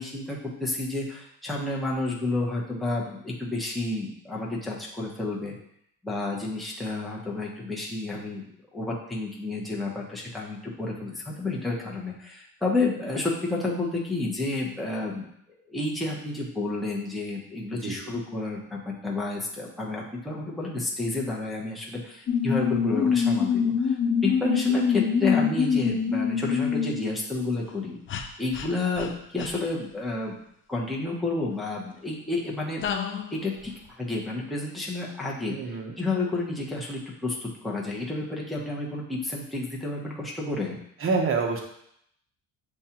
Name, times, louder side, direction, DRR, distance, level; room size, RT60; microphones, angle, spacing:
voice 1, 0.0-5.5 6.0-8.4 8.7-15.3 15.7-24.0 24.2-30.4 30.7-32.9 33.3-33.7 34.0-40.8, left 2 dB, ahead, -4 dB, 0.7 m, -30 dB
sound 1, 22.3-27.1 28.1-28.2 28.5-28.7 29.0-29.1 29.4-29.5 32.8-33.4, left 6 dB, 35° left, 0.4 m, -25 dB
voice 2, 35.5-35.9 41.0-41.6, right 4 dB, 35° right, 2 dB, 0.7 m, -27 dB
7.0 x 2.4 x 2.8 m, 0.72 s
cardioid pair, 130°, 35 cm